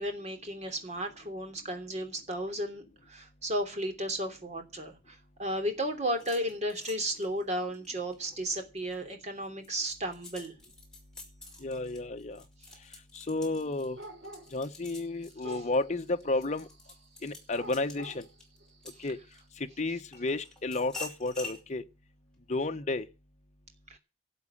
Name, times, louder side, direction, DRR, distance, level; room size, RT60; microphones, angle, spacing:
voice 1, 0.0-10.5 15.5-15.6 23.9-24.0, right 1 dB, 40° right, 3.0 m, -34 dB
sound 1, 6.1-9.0 9.4-19.6 20.1-21.6, left 3 dB, 5° left, 5.5 m, -47 dB
voice 2, 11.6-12.4 13.1-14.0 14.5-16.7 17.2-18.2 19.0-19.2 19.8-21.8 22.5-23.0, left 2 dB, 40° left, 1.0 m, -32 dB
sound 2, 14.0-15.1 15.4-15.9 16.3-19.3, right 1 dB, 75° right, 4.9 m, -48 dB
12.5 x 7.6 x 9.8 m
head